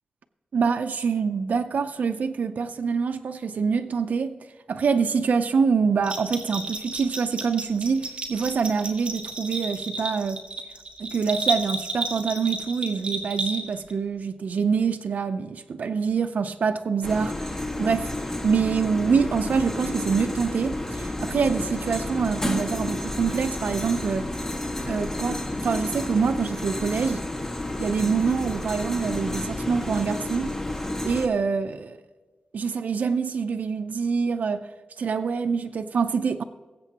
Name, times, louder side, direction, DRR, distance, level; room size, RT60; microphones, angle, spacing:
voice 1, 0.5-4.4 4.7-10.4 11.0-17.5 17.8-18.1 18.4-24.3 24.8-27.2 27.8-30.6 31.0-32.0 32.5-34.6 35.0-36.4, right 5 dB, 75° right, 0.5 m, -25 dB
Bell, 6.0-13.9, right 2 dB, 45° right, 1.8 m, -32 dB
sound 1, 17.0-31.3, left 1 dB, 20° left, 1.6 m, -31 dB
20.5 x 8.1 x 2.9 m
wide cardioid pair, 95°, 3 cm